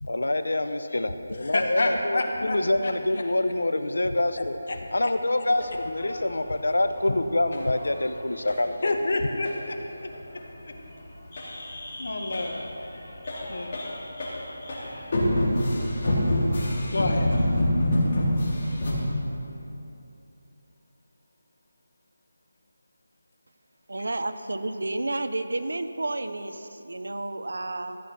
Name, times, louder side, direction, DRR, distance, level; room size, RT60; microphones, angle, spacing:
voice 1, 0.0-4.6 4.9-8.9, left 1 dB, 90° left, 9 dB, 0.8 m, -26 dB
voice 2, 1.4-2.9 4.7-4.8 8.8-10.1 12.0-12.7 13.5-13.7 16.9-17.5, left 2 dB, 65° left, 3 dB, 1.6 m, -28 dB
sound 1, 5.6-8.1 8.4-8.6 8.9-9.0 9.2-9.5 9.8-9.9 10.1-10.9 11.2-18.9, left 1 dB, 40° left, 3.3 m, -27 dB
voice 3, 23.9-28.0, right 2 dB, 80° right, 8 dB, 0.9 m, -31 dB
14.5 x 8.7 x 6.0 m, 2.9 s
figure-of-eight pair, 170°, 0 cm